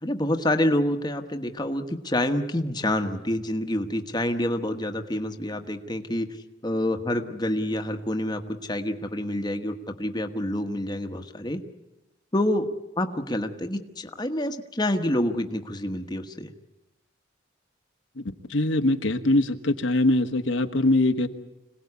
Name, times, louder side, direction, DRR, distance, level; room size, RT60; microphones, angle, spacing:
voice 1, 0.0-6.3 6.6-11.6 12.3-12.7 13.0-16.5, left 1 dB, 20° left, 1.2 m, -27 dB
voice 2, 18.5-21.3, left 2 dB, 85° left, 1.4 m, -22 dB
26.0 x 18.0 x 9.7 m
head